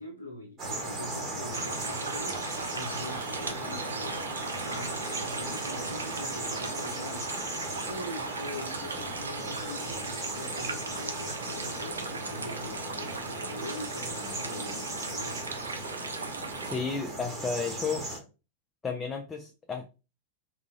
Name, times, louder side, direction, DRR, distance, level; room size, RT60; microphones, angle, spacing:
voice 1, 0.0-2.4 2.7-4.3 4.6-7.4 7.9-15.4, left 1 dB, 85° left, 0.5 m, -42 dB
sound 1, 0.6-18.2, right 2 dB, 30° right, 1.3 m, -37 dB
sound 2, 1.5-16.8, right 4 dB, 75° right, 0.5 m, -38 dB
voice 2, 16.6-18.0 18.8-19.9, left 5 dB, 15° left, 0.5 m, -32 dB
3.6 x 2.9 x 2.5 m
figure-of-eight pair, 90°, 0 cm